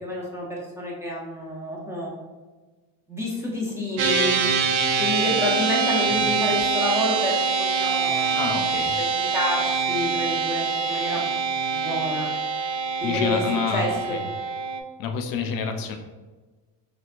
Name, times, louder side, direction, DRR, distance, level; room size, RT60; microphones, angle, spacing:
voice 1, 0.0-2.1 3.1-4.3 5.0-11.3 11.7-12.3 13.0-13.4 13.7-14.2, left 1 dB, 5° right, -5 dB, 0.6 m, -29 dB
sound 1, 4.0-14.8, right 5 dB, 60° right, 0.6 m, -24 dB
voice 2, 8.3-9.0 13.0-14.2 15.0-16.0, left 6 dB, 50° left, 5 dB, 0.4 m, -28 dB
3.3 x 3.0 x 2.4 m, 1.3 s
cardioid pair, 135°, 45 cm